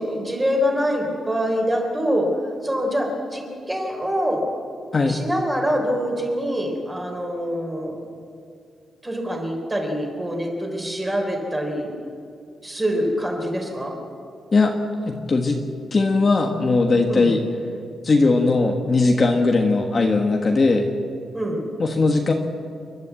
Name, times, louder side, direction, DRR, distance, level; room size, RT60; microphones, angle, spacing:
voice 1, 0.0-2.3 2.6-4.4 5.1-8.0 9.0-11.9 12.6-13.9 17.1-17.4 21.3-21.7, equal, 10° right, 1 dB, 3.9 m, -25 dB
voice 2, 15.0-15.6 15.9-17.4 18.0-20.9 21.8-22.3, left 3 dB, 30° left, 2 dB, 1.4 m, -19 dB
29.0 x 12.0 x 8.3 m, 2.4 s
wide cardioid pair, 160°, 0 cm